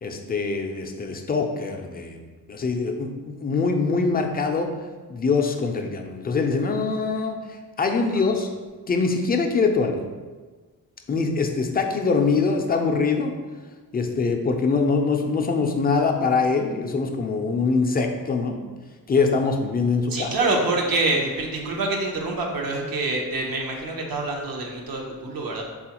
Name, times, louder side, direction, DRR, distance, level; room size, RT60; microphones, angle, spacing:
voice 1, 0.0-2.2 2.5-4.7 5.1-7.4 7.8-8.5 8.9-10.0 11.1-13.3 13.9-18.6 19.1-20.3, left 4 dB, 25° left, 4 dB, 0.4 m, -23 dB
voice 2, 20.1-25.6, right 2 dB, 65° right, 0 dB, 0.7 m, -26 dB
3.4 x 2.4 x 2.9 m, 1.4 s
cardioid pair, 50°, 38 cm